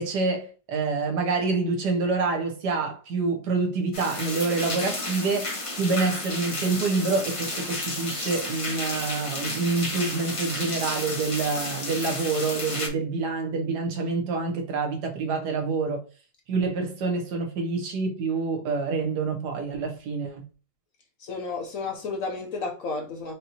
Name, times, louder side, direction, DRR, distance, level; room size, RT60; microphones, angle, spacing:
voice 1, 0.0-16.0 16.5-20.4, right 4 dB, 65° right, 1.3 m, -27 dB
sound 1, 3.9-12.9, left 2 dB, 40° left, 0.4 m, -32 dB
voice 2, 21.2-23.3, left 4 dB, 60° left, 0.9 m, -32 dB
5.3 x 2.7 x 2.8 m
omnidirectional pair, 2.0 m